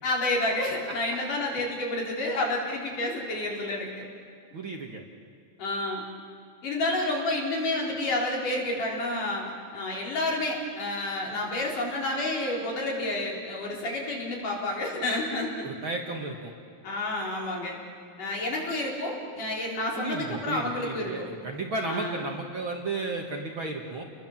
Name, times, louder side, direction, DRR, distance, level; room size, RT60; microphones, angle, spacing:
voice 1, 0.0-4.0 5.6-6.0 6.6-9.4 9.7-15.7 16.8-17.8 18.2-21.4 21.9-22.2, left 2 dB, 70° left, -2 dB, 5.6 m, -30 dB
voice 2, 0.9-1.2 4.5-5.0 15.6-16.5 20.0-24.0, right 3 dB, 45° right, 1 dB, 2.0 m, -34 dB
30.0 x 21.5 x 7.4 m, 2.3 s
omnidirectional pair, 3.8 m